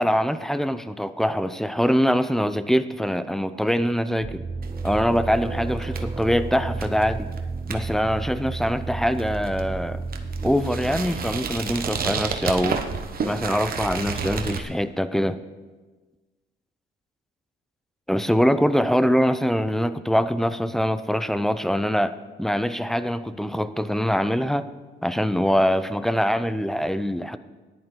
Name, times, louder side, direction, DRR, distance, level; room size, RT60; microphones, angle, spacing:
voice 1, 0.0-4.4 4.8-7.3 7.7-10.0 10.4-12.8 13.2-15.4 18.1-24.7 25.0-27.4, equal, ahead, 13 dB, 0.5 m, -23 dB
sound 1, 4.2-11.6, right 3 dB, 20° right, 0.9 m, -32 dB
sound 2, 4.6-14.6, right 5 dB, 50° right, 1.1 m, -32 dB
14.0 x 10.5 x 3.9 m, 1.3 s
cardioid pair, 90°, 20 cm